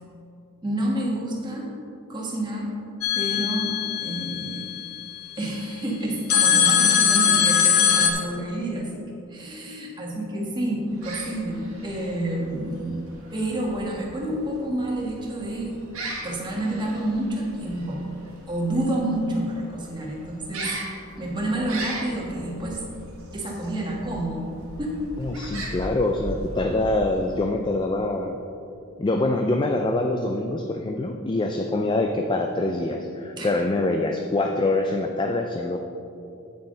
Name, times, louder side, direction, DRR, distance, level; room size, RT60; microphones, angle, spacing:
voice 1, 0.6-1.7 2.1-2.7 3.1-4.7 5.4-8.9 9.3-15.7 16.2-18.1 18.5-20.7 21.2-22.8 23.3-24.5 24.8-25.3 33.4-33.5, right 1 dB, 20° right, -3 dB, 1.4 m, -29 dB
sound 1, 3.0-5.3 6.3-8.1, left 8 dB, 90° left, 1.0 m, -21 dB
sound 2, 10.8-27.6, right 2 dB, 75° right, 1.6 m, -39 dB
voice 2, 25.2-28.4 29.0-35.8, left 2 dB, 20° left, 3 dB, 0.3 m, -25 dB
8.3 x 8.3 x 3.8 m, 2.7 s
head